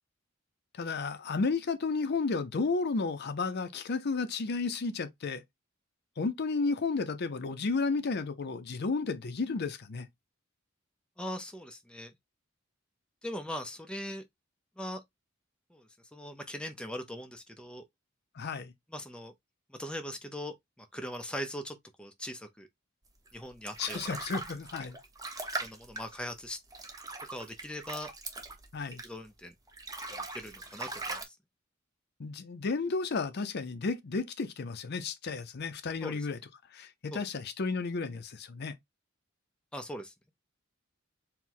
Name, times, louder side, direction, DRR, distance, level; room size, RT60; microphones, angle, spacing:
voice 1, 0.7-5.4 6.2-10.1 18.3-18.7 23.8-25.0 28.7-29.0 32.2-36.4 36.7-38.8, left 4 dB, 55° left, 0.6 m, -32 dB
voice 2, 11.2-12.1 13.2-14.3 14.8-15.0 15.7-17.8 18.9-19.3 19.7-22.7 23.3-24.1 25.6-26.6 27.3-28.1 29.0-29.5 30.1-31.4 36.0-36.2 37.1-37.3 39.7-40.1, equal, 5° left, 0.5 m, -40 dB
sound 1, 23.3-29.3 29.7-31.2, right 2 dB, 20° right, 0.8 m, -41 dB
4.5 x 2.1 x 3.7 m
head